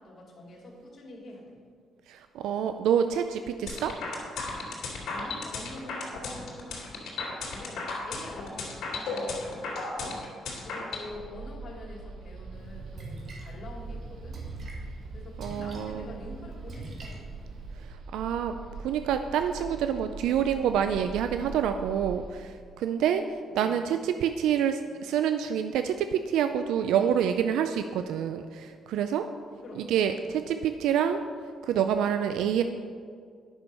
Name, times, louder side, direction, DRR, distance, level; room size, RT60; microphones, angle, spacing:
voice 1, 0.0-1.6 5.0-10.2 10.6-14.4 15.1-17.2 23.4-24.5 29.6-29.9 30.1-30.4, left 2 dB, 50° left, -2 dB, 2.6 m, -46 dB
voice 2, 2.1-3.9 15.4-16.1 17.8-29.3 29.8-31.2 31.6-32.6, right 8 dB, 85° right, 8 dB, 0.4 m, -27 dB
sound 1, 3.7-11.1, left 3 dB, 70° left, 2.6 m, -34 dB
sound 2, 11.1-22.3, right 4 dB, 70° right, 1.1 m, -43 dB
Splash splatter, 12.5-17.8, right 2 dB, 55° right, 1.8 m, -43 dB
9.8 x 6.2 x 5.3 m, 2.1 s
cardioid pair, 90°, 0 cm